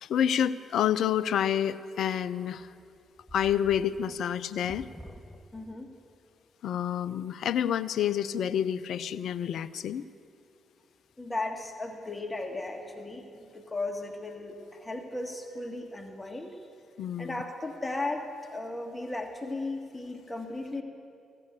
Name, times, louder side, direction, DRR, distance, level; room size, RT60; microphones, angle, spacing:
voice 1, 0.0-2.7 3.3-4.9 6.6-10.1 17.0-17.4, left 9 dB, 65° left, 16 dB, 0.4 m, -28 dB
sound 1, 2.5-6.0, equal, 5° left, 0.8 m, -49 dB
voice 2, 5.5-5.9 11.2-16.6 17.2-20.8, left 2 dB, 20° left, 4 dB, 1.6 m, -36 dB
14.5 x 8.3 x 8.0 m, 2.4 s
hypercardioid pair, 40°, 0 cm